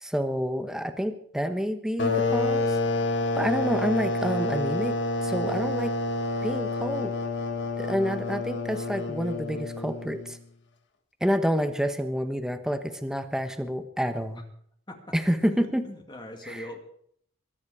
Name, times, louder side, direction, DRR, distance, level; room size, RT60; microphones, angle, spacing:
voice 1, 0.0-2.8 3.3-5.9 6.4-7.1 7.8-10.4 11.2-14.4 15.1-15.8 16.4-16.6, equal, 5° right, 8 dB, 1.1 m, -28 dB
sound 1, 2.0-10.4, left 2 dB, 60° left, 1.5 m, -28 dB
voice 2, 15.5-16.8, left 1 dB, 20° left, 4 dB, 2.2 m, -41 dB
22.0 x 9.7 x 4.9 m, 0.66 s
head